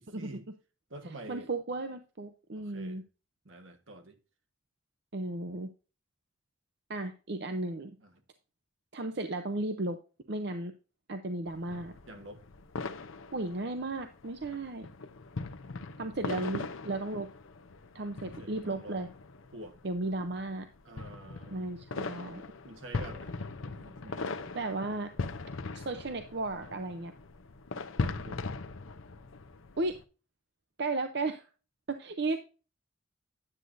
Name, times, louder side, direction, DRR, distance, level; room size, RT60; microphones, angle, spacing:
voice 1, 0.2-0.5 0.9-1.5 2.6-3.0 3.4-4.2 8.0-8.1 12.1-12.4 18.1-19.0 19.5-19.8 20.8-21.8 22.6-24.6 28.0-28.4, right 1 dB, 75° right, 1.4 m, -48 dB
voice 2, 1.3-3.0 5.1-5.7 6.9-8.0 8.9-10.0 10.3-10.7 11.1-11.9 13.3-14.9 16.0-17.3 17.9-19.1 19.8-20.7 21.5-22.4 24.5-25.1 25.7-27.1 29.8-30.0 30.8-31.5 31.9-32.4, right 2 dB, 55° right, 0.7 m, -34 dB
sound 1, 11.5-30.0, left 3 dB, 80° left, 0.7 m, -40 dB
9.8 x 7.8 x 2.6 m
head